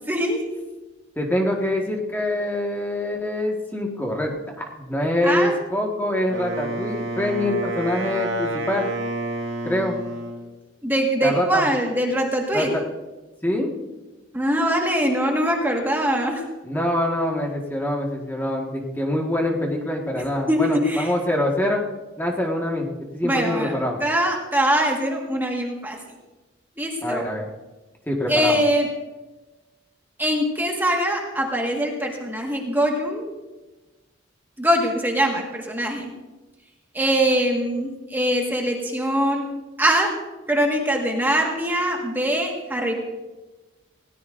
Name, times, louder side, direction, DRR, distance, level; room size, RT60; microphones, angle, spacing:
voice 1, 0.1-0.5 5.2-5.6 10.8-12.7 14.3-16.4 20.1-21.1 23.2-26.0 26.8-27.2 28.3-28.9 30.2-33.3 34.6-36.1 36.9-39.5 39.8-40.2 40.5-43.0, equal, 10° right, 0 dB, 1.6 m, -22 dB
voice 2, 1.1-8.9 9.6-10.0 11.2-11.6 12.5-12.8 13.4-13.7 16.6-21.8 22.2-22.9 23.1-24.0 27.0-27.5 28.1-28.6, left 1 dB, 10° left, -1 dB, 1.6 m, -25 dB
Wind instrument woodwind instrument, 6.3-10.5, right 1 dB, 70° right, 2.2 m, -29 dB
20.0 x 17.0 x 2.6 m, 1.1 s
head